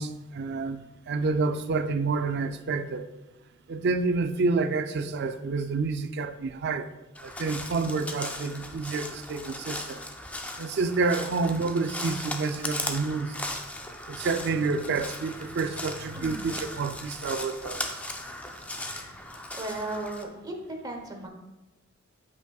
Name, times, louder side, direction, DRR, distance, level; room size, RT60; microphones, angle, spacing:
voice 1, 0.0-3.1 3.7-6.9 7.2-10.0 10.6-13.3 14.1-17.8, right 4 dB, 55° right, 0.4 m, -28 dB
Crow, 7.2-20.2, left 1 dB, 5° left, 0.4 m, -37 dB
voice 2, 19.5-20.6 20.8-21.3, right 2 dB, 20° right, 0.9 m, -35 dB
8.8 x 5.4 x 2.3 m
head